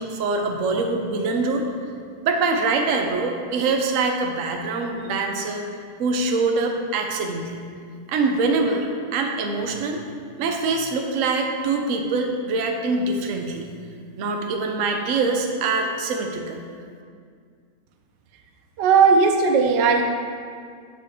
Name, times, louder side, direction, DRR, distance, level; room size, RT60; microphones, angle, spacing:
voice 1, 0.0-1.7 2.2-5.6 6.0-7.5 8.1-8.8 9.1-10.0 10.4-13.7 14.2-16.6, right 3 dB, 60° right, 3 dB, 0.9 m, -24 dB
voice 2, 18.8-20.0, right 5 dB, 85° right, 4 dB, 1.3 m, -16 dB
7.4 x 7.1 x 3.5 m, 2.1 s
omnidirectional pair, 1.9 m